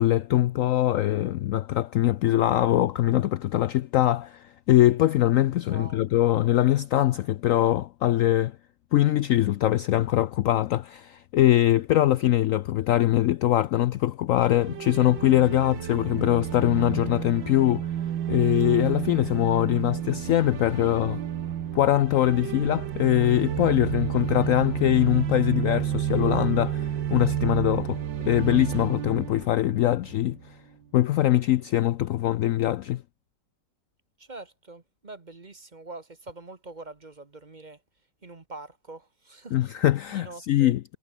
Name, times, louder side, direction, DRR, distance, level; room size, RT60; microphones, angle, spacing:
voice 1, 0.0-8.6 8.9-17.9 18.3-21.2 21.7-30.6 30.9-33.0 39.5-40.8, left 13 dB, 85° left, 0.7 m, -22 dB
voice 2, 5.7-6.0 34.2-37.8 38.2-39.6 40.1-40.7, right 3 dB, 25° right, 1.3 m, -44 dB
sound 1, 14.4-30.5, right 10 dB, 90° right, 1.9 m, -30 dB
omnidirectional pair, 1.9 m